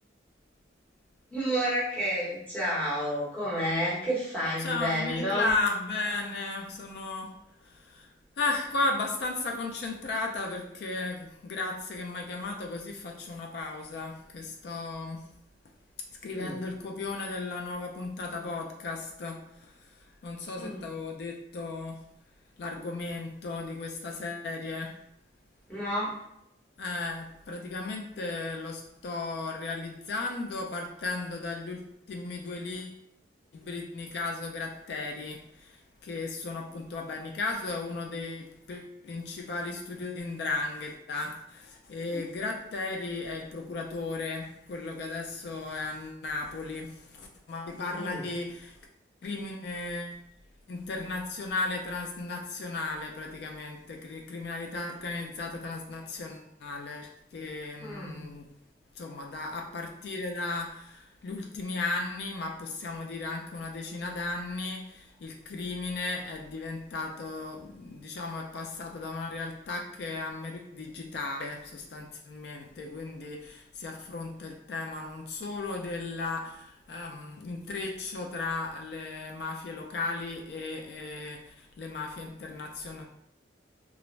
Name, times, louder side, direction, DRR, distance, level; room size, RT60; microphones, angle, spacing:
voice 1, 1.3-5.5 16.3-16.6 20.6-20.9 25.7-26.1 42.1-42.2 47.9-48.2 57.8-58.2, equal, 10° left, -8 dB, 0.8 m, -30 dB
voice 2, 4.6-7.3 7.6-8.1 8.4-15.3 16.2-19.7 20.2-22.0 22.6-25.0 26.8-33.0 33.5-48.8 49.2-50.1 50.7-58.5 59.0-83.0, left 3 dB, 60° left, 1 dB, 0.3 m, -35 dB
2.4 x 2.0 x 3.1 m, 0.78 s
head